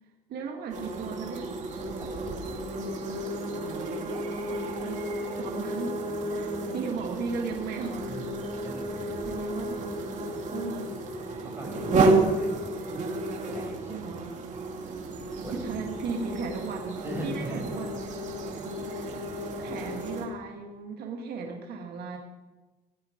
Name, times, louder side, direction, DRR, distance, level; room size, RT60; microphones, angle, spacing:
voice 1, 0.3-1.5 4.5-6.0 6.3-8.3 8.9-10.0 10.5-11.0 13.9-14.4 15.5-17.9 18.9-19.3 19.6-22.2, right 5 dB, 70° right, 1 dB, 2.1 m, -36 dB
sound 1, 0.7-20.2, right 2 dB, 45° right, 2.9 m, -31 dB
voice 2, 2.0-2.5 8.1-8.3 8.6-9.2 11.2-12.6 13.5-14.0 15.4-15.8 17.0-17.6, right 1 dB, 15° right, -2 dB, 6.1 m, -40 dB
18.0 x 11.0 x 5.2 m, 1.2 s
cardioid pair, 110°, 17 cm